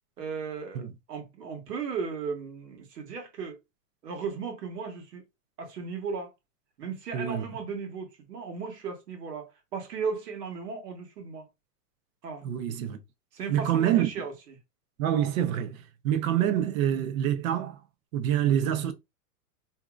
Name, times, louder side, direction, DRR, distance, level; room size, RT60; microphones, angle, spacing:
voice 1, 0.2-3.6 4.0-5.2 5.6-6.3 6.8-11.5 12.2-12.5 13.3-14.6, right 5 dB, 80° right, 1.3 m, -36 dB
voice 2, 7.1-7.5 12.4-13.0 13.5-14.1 15.0-17.8 18.1-18.9, right 10 dB, 60° right, 0.8 m, -26 dB
2.8 x 2.6 x 2.3 m
hypercardioid pair, 110°, 47 cm